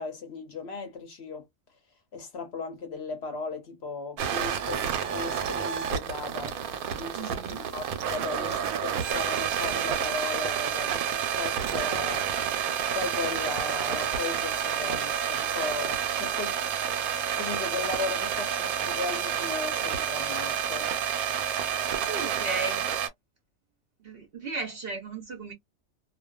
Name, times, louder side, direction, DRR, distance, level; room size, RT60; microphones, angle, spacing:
voice 1, 0.0-1.4 2.1-6.6 7.0-12.2 12.9-16.6 17.4-20.9, left 4 dB, 55° left, 0.8 m, -36 dB
sound 1, 4.2-23.1, right 9 dB, 90° right, 1.1 m, -29 dB
voice 2, 7.2-7.6 8.4-8.6 21.9-22.9 24.0-25.5, right 3 dB, 55° right, 0.7 m, -35 dB
2.5 x 2.3 x 2.2 m
omnidirectional pair, 1.5 m